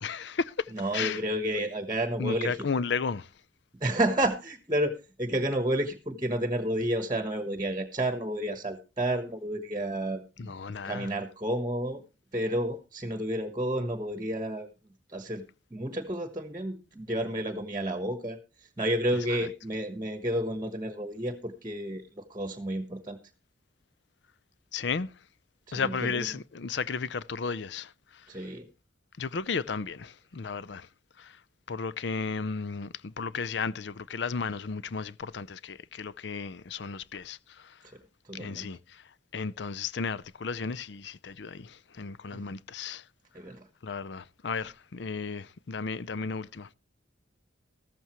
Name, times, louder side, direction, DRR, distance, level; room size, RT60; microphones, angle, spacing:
voice 1, 0.0-1.2 2.2-3.3 10.4-11.1 24.7-25.1 25.7-27.9 29.2-30.9 31.2-31.3 31.7-37.4 38.3-38.8 39.3-43.0 43.8-46.7, left 5 dB, 65° left, 0.6 m, -34 dB
voice 2, 0.7-2.6 3.8-4.9 5.2-10.6 10.8-12.0 12.3-14.7 15.1-15.4 15.7-23.2 25.7-26.3 28.3-28.7 38.3-38.7 42.3-42.4 43.3-43.7, right 1 dB, 20° right, 1.2 m, -31 dB
14.0 x 14.0 x 3.1 m
head